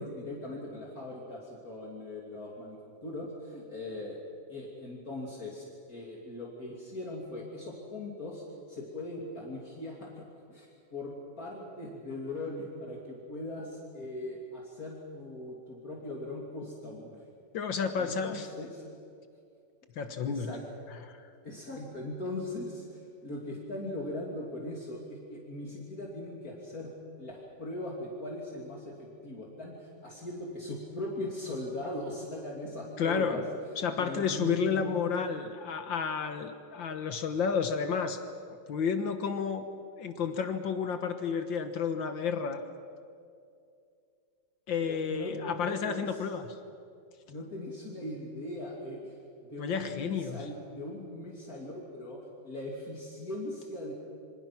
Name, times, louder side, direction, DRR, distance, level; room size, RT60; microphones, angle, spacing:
voice 1, 0.0-4.2 4.5-8.4 8.7-10.2 10.5-17.2 18.0-18.9 20.0-20.6 21.4-26.9 27.2-33.4 33.7-35.1 44.9-46.2 47.3-53.9, left 1 dB, 50° left, -2 dB, 3.4 m, -40 dB
voice 2, 17.5-18.5 20.0-20.5 21.1-21.2 33.0-33.4 33.8-38.2 38.7-39.6 40.0-42.6 44.7-46.5 49.6-50.5, left 6 dB, 80° left, 8 dB, 2.0 m, -31 dB
27.5 x 26.0 x 6.0 m, 2.4 s
omnidirectional pair, 2.0 m